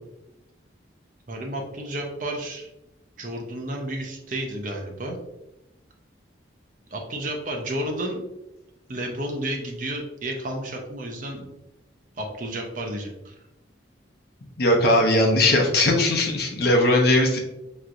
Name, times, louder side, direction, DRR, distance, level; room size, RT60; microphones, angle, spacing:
voice 1, 1.3-2.7 3.2-5.2 6.9-8.2 8.9-11.5 12.2-13.3, right 1 dB, 45° right, 1 dB, 0.7 m, -31 dB
voice 2, 14.6-17.4, left 1 dB, 55° left, 1 dB, 0.8 m, -19 dB
5.8 x 3.1 x 2.5 m, 0.94 s
head